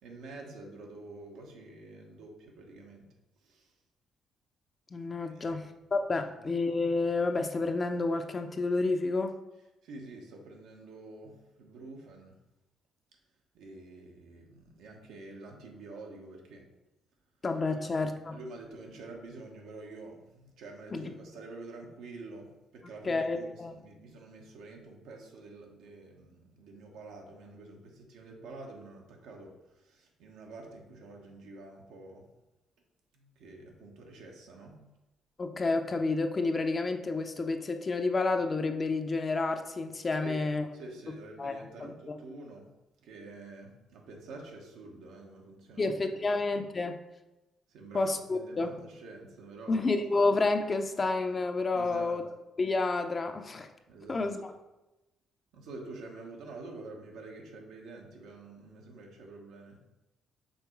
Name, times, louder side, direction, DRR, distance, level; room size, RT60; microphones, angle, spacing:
voice 1, 0.0-3.1 3.4-3.7 5.2-5.6 6.2-6.3 9.8-12.4 13.5-16.7 17.7-17.9 18.3-32.3 33.1-34.9 40.1-42.7 43.0-45.9 46.2-46.4 47.7-49.8 51.7-52.2 53.9-54.3 55.5-59.8, right 3 dB, 90° right, 1 dB, 1.2 m, -48 dB
voice 2, 4.9-9.3 17.4-18.4 20.9-21.1 23.0-23.7 35.4-40.7 41.1-42.2 45.8-47.0 47.9-48.7 49.7-52.2 52.6-53.7 54.1-54.5, left 3 dB, 35° left, 6 dB, 0.6 m, -30 dB
5.6 x 3.7 x 4.5 m, 0.98 s
cardioid pair, 90°, 0 cm